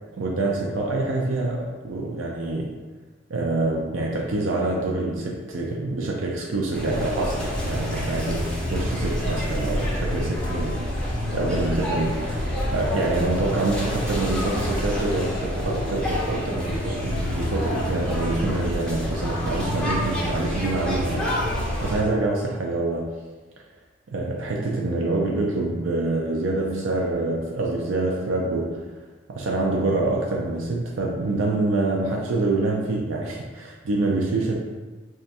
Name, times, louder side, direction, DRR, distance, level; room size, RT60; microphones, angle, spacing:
voice 1, 0.1-2.7 3.3-10.8 11.3-12.5 12.7-21.2 21.6-23.1 24.1-28.8 29.3-34.5, right 2 dB, 90° right, -2 dB, 0.5 m, -26 dB
sound 1, 6.7-22.0, left 1 dB, 5° left, 0.7 m, -27 dB
3.3 x 2.4 x 4.1 m, 1.3 s
head